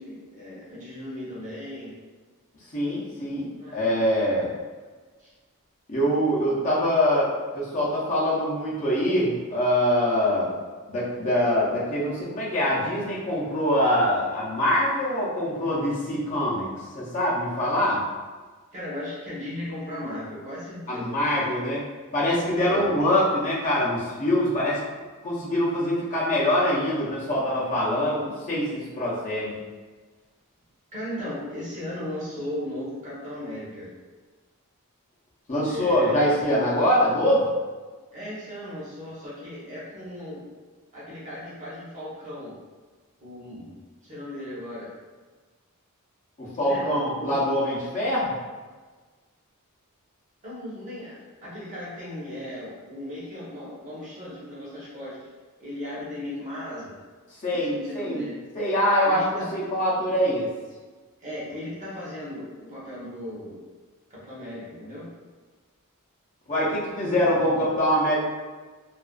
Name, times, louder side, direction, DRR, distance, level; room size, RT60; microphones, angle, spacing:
voice 1, 0.0-1.9 3.5-4.2 5.2-5.3 18.7-21.2 21.4-21.8 22.6-22.9 30.9-33.9 35.6-36.4 38.1-40.4 40.9-42.6 43.2-44.9 46.6-47.4 50.4-55.3 55.6-57.0 57.5-58.4 59.0-59.6 61.2-63.6 64.1-65.1, left 1 dB, 35° right, -8 dB, 0.9 m, -37 dB
voice 2, 2.7-4.5 5.9-10.5 10.9-16.7 16.9-18.0 20.9-21.8 22.1-24.8 25.2-29.5 35.5-37.5 46.4-48.3 57.4-58.2 58.5-60.5 66.5-68.2, equal, 35° left, -7 dB, 0.6 m, -24 dB
2.4 x 2.3 x 2.3 m, 1.4 s
head